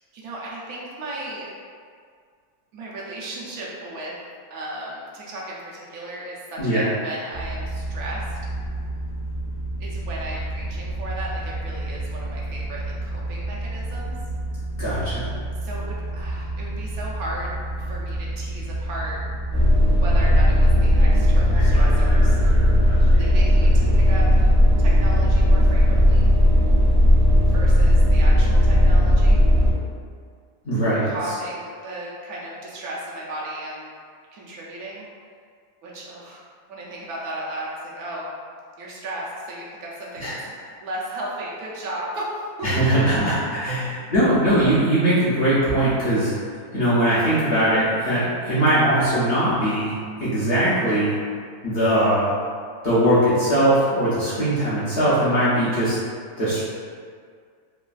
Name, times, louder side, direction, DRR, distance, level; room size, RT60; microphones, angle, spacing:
voice 1, 0.1-1.5 2.7-4.1 4.5-8.4 9.8-14.1 15.6-17.5 17.9-19.2 20.0-22.4 23.2-24.5 24.8-26.3 27.5-29.4 31.0-33.9 34.3-35.1 35.8-36.4 36.7-38.3 38.8-40.3 40.8-42.7 43.7-43.8, right 1 dB, 75° right, -5 dB, 1.1 m, -35 dB
voice 2, 6.6-6.9 14.8-15.3 30.6-31.1 40.2-40.3 42.6-46.3 46.7-51.2 51.6-52.3 52.8-56.0 56.4-56.6, right 1 dB, 55° left, -11 dB, 0.7 m, -20 dB
sound 1, 7.3-20.2, right 1 dB, 75° left, 1.1 m, -30 dB
sound 2, 19.5-29.7, equal, 50° right, 0.5 m, -16 dB
3.2 x 2.2 x 2.3 m, 2.1 s
omnidirectional pair, 1.6 m